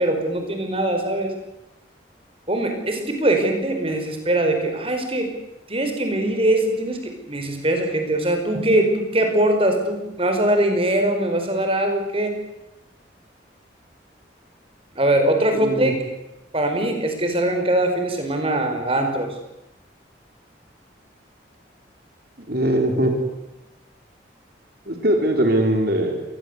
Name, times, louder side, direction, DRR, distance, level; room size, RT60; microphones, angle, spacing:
voice 1, 0.0-1.4 2.5-5.3 5.7-12.4 15.0-15.9 16.5-19.3, right 1 dB, 30° right, 5 dB, 5.1 m, -22 dB
voice 2, 15.6-15.9 22.5-23.1 24.9-26.2, right 1 dB, 55° right, 4 dB, 4.3 m, -20 dB
26.5 x 20.5 x 8.2 m, 0.91 s
head